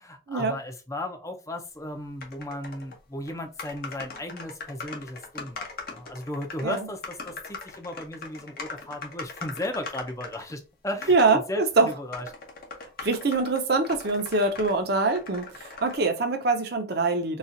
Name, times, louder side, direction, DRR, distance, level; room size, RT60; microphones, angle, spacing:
voice 1, 0.0-12.3, left 1 dB, 15° left, 0.5 m, -35 dB
sound 1, 2.2-3.0 3.3-3.4 3.6-10.5 11.0-11.4 11.9-14.8 15.1-16.0, left 4 dB, 50° left, 0.8 m, -40 dB
voice 2, 11.1-11.9 13.0-17.4, right 3 dB, 55° right, 0.7 m, -24 dB
4.0 x 2.4 x 2.6 m
head